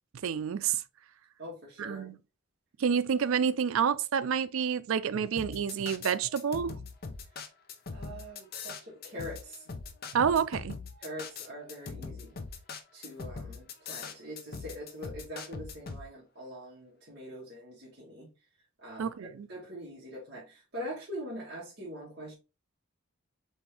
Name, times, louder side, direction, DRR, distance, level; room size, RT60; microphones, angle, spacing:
voice 1, 0.2-0.8 1.8-2.2 2.8-6.8 10.1-10.8 19.0-19.5, right 7 dB, 75° right, 0.4 m, -28 dB
voice 2, 1.4-2.1 7.9-9.6 11.0-12.4 12.9-18.3 18.8-19.1 19.5-22.3, equal, 50° right, 1.7 m, -43 dB
sound 1, 5.4-16.0, left 4 dB, 45° left, 0.6 m, -41 dB
4.3 x 3.4 x 3.3 m
head